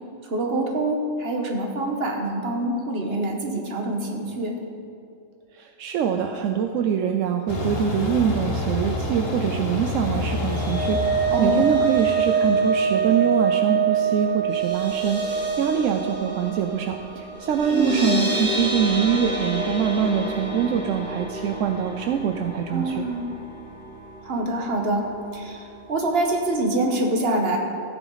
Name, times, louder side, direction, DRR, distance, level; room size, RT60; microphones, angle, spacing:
voice 1, 0.2-4.6 11.3-11.7 17.7-18.3 22.7-23.4 24.2-25.0 25.3-27.6, right 1 dB, 50° right, 2 dB, 1.5 m, -25 dB
voice 2, 5.5-23.0, right 8 dB, 80° right, 5 dB, 1.0 m, -24 dB
sound 1, 7.5-13.2, left 1 dB, 50° left, 1.6 m, -29 dB
sound 2, 10.1-24.4 24.7-25.0 25.3-25.4, right 5 dB, 35° right, 1.9 m, -26 dB
15.0 x 9.1 x 4.0 m, 2.4 s
omnidirectional pair, 1.3 m